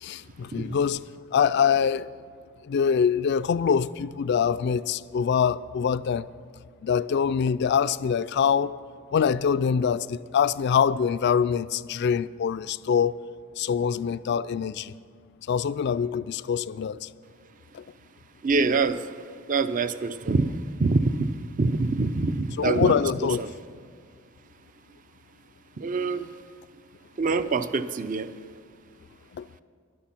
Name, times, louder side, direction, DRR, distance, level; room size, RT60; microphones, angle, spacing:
voice 1, 0.0-1.0 1.3-2.1 2.6-6.3 6.8-8.8 9.1-13.2 13.6-14.9 15.5-17.1 17.7-17.8 22.6-23.4 29.3-29.5, left 7 dB, 55° left, 0.3 m, -24 dB
voice 2, 18.4-21.3 21.6-23.5 25.8-26.3 27.2-28.3, right 3 dB, 40° right, 0.5 m, -25 dB
13.0 x 11.0 x 5.8 m
head